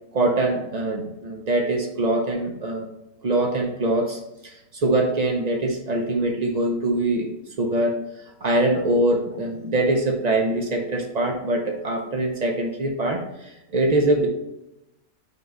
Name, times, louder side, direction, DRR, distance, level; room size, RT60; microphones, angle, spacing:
voice 1, 0.1-2.9 3.2-7.3 7.6-8.0 8.4-14.3, right 2 dB, 90° right, 2 dB, 0.3 m, -23 dB
5.5 x 4.6 x 3.7 m, 0.89 s
omnidirectional pair, 1.7 m